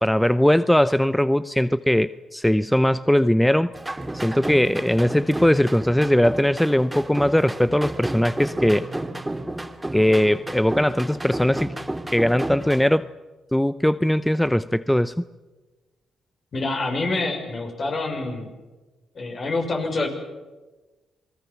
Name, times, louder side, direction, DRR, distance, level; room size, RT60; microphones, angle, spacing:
voice 1, 0.0-3.7 4.1-8.9 9.9-11.7 12.1-13.1 13.5-15.1, left 1 dB, 5° left, 15 dB, 0.7 m, -20 dB
sound 1, 3.7-12.9, right 1 dB, 15° right, 2.7 m, -32 dB
voice 2, 16.5-18.5 19.1-20.1, left 2 dB, 50° left, 3 dB, 6.2 m, -26 dB
27.0 x 20.0 x 7.3 m, 1.2 s
supercardioid pair, 55°, 0 cm